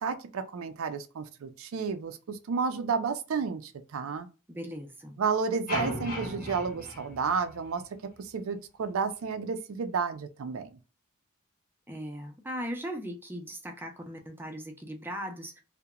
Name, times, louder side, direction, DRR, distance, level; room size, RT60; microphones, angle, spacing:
voice 1, 0.0-4.3 5.2-7.8 8.2-10.8, right 5 dB, 70° right, 0.4 m, -31 dB
voice 2, 4.5-5.2 11.9-15.6, equal, 10° right, 0.5 m, -38 dB
sound 1, 5.7-8.0, left 1 dB, 45° left, 0.8 m, -36 dB
2.8 x 2.1 x 2.3 m
head